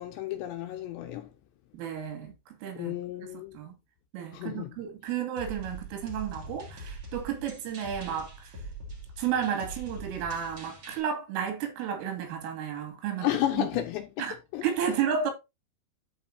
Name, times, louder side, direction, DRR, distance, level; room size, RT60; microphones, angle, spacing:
voice 1, 0.0-1.4 2.8-3.6 4.3-4.8 13.2-15.0, left 13 dB, 80° left, 2.7 m, -33 dB
voice 2, 1.7-2.9 3.5-3.8 4.1-8.6 9.2-13.3 13.6-13.7 14.2-14.4 14.6-15.3, right 8 dB, 80° right, 5.0 m, -32 dB
sound 1, 5.4-11.0, right 2 dB, 35° right, 2.7 m, -43 dB
13.5 x 5.2 x 2.7 m
omnidirectional pair, 5.8 m